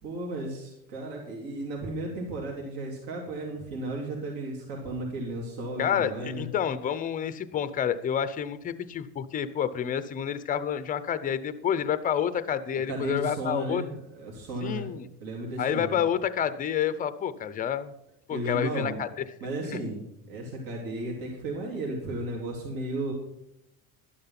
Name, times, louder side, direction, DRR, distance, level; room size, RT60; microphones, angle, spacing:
voice 1, 0.0-6.5 12.9-14.9 15.2-16.0 18.3-19.0 19.4-23.1, right 1 dB, 60° right, -1 dB, 3.4 m, -34 dB
voice 2, 5.8-13.8 14.6-15.0 15.6-17.9 18.3-19.1, left 9 dB, 20° left, 13 dB, 0.5 m, -29 dB
11.5 x 10.5 x 5.8 m, 0.82 s
cardioid pair, 170°, 41 cm